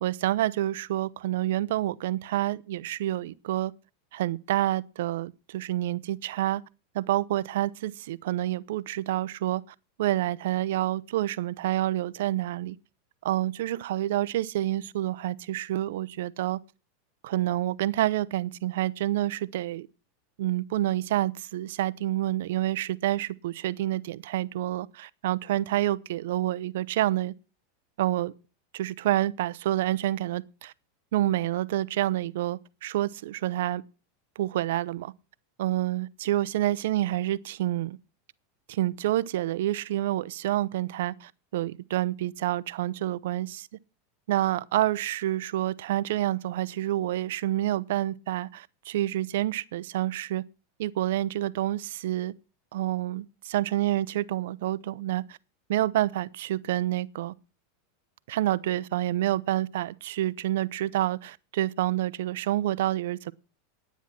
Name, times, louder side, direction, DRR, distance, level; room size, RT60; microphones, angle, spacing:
voice 1, 0.0-3.7 4.1-6.6 6.9-9.6 10.0-12.8 13.2-16.6 17.2-19.9 20.4-27.3 28.0-28.3 28.7-30.7 31.1-33.8 34.4-35.1 35.6-38.0 38.7-43.7 44.3-50.4 50.8-52.3 52.7-55.4 55.7-57.3 58.3-63.3, right 14 dB, 75° right, 0.6 m, -28 dB
10.5 x 9.3 x 5.7 m
hypercardioid pair, 115°, 0 cm